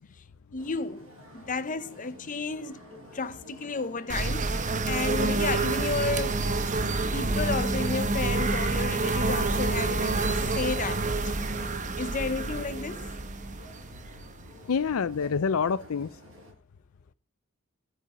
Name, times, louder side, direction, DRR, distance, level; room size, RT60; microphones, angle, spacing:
voice 1, 0.5-1.1 1.3-2.8 3.1-6.4 7.1-10.2 10.5-11.0 11.5-13.0, left 4 dB, 40° left, 0.9 m, -32 dB
sound 1, 0.6-16.5, equal, 65° right, 6.5 m, -50 dB
sound 2, 4.1-14.7, right 3 dB, 35° right, 1.0 m, -28 dB
Bass guitar, 7.3-13.6, equal, 10° left, 1.7 m, -39 dB
voice 2, 14.7-16.1, left 6 dB, 75° left, 0.5 m, -27 dB
12.5 x 8.1 x 5.0 m
head